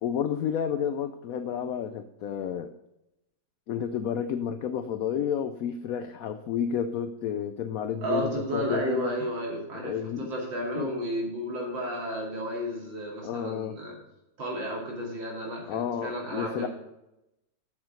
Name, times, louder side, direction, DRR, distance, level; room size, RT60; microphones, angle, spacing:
voice 1, 0.0-2.7 3.7-9.1 9.7-10.3 10.8-10.9 13.2-13.8 15.7-16.7, left 8 dB, 85° left, 10 dB, 0.7 m, -31 dB
voice 2, 8.0-13.9 14.4-16.7, equal, 75° right, -2 dB, 3.4 m, -32 dB
7.7 x 7.1 x 6.4 m, 0.90 s
omnidirectional pair, 2.1 m